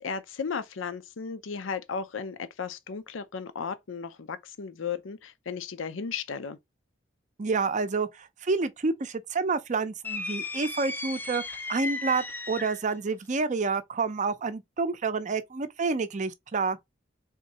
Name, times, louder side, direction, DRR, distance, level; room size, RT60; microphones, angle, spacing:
voice 1, 0.0-6.6, left 6 dB, 80° left, 0.6 m, -35 dB
voice 2, 7.4-16.8, right 4 dB, 40° right, 0.5 m, -29 dB
sound 1, 10.0-12.9, left 2 dB, 10° left, 0.4 m, -35 dB
3.6 x 2.7 x 4.2 m
head